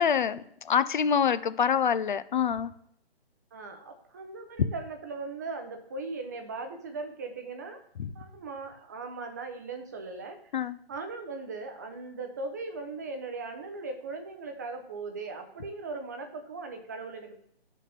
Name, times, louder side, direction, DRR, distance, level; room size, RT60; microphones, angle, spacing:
voice 1, 0.0-2.7 8.0-8.1 10.5-10.8, left 7 dB, 50° left, 14 dB, 0.5 m, -26 dB
voice 2, 3.5-7.8 8.1-10.4 10.9-17.4, right 3 dB, 20° right, 5 dB, 0.5 m, -39 dB
10.5 x 4.2 x 3.4 m, 0.72 s
hypercardioid pair, 160°, 31 cm